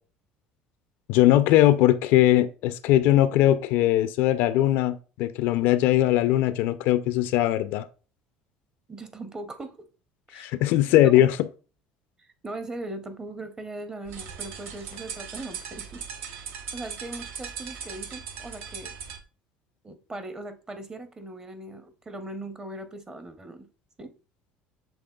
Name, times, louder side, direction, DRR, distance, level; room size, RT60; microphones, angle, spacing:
voice 1, 1.1-7.8 10.3-11.4, left 13 dB, 75° left, 0.4 m, -20 dB
voice 2, 8.9-9.7 10.3-10.5 10.9-11.3 12.2-16.0 16.7-18.9 19.8-23.7 24.0-24.1, right 2 dB, 20° right, 0.7 m, -39 dB
sound 1, 14.1-19.2, right 7 dB, 70° right, 0.6 m, -39 dB
7.1 x 3.1 x 2.2 m
supercardioid pair, 95°, 4 cm